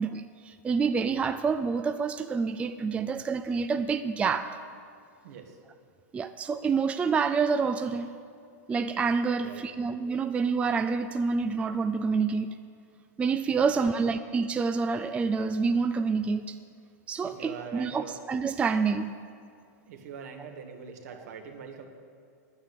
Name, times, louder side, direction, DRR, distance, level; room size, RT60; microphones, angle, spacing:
voice 1, 0.0-4.6 6.1-8.1 8.7-12.6 13.2-16.6 17.1-19.1 21.1-21.2, right 5 dB, 15° right, 9 dB, 0.4 m, -27 dB
voice 2, 5.2-5.6 9.3-9.6 13.5-13.9 17.2-18.2 19.9-21.9, right 6 dB, 70° right, 4 dB, 1.7 m, -43 dB
10.5 x 9.5 x 8.3 m, 2.5 s
hypercardioid pair, 130°, 9 cm